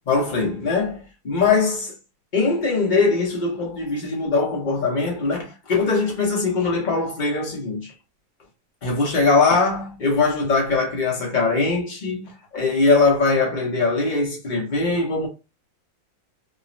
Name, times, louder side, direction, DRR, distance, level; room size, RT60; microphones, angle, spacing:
voice 1, 0.1-1.9 2.3-7.9 8.8-15.3, left 3 dB, 80° left, 0.4 m, -21 dB
3.5 x 2.0 x 2.5 m
omnidirectional pair, 2.0 m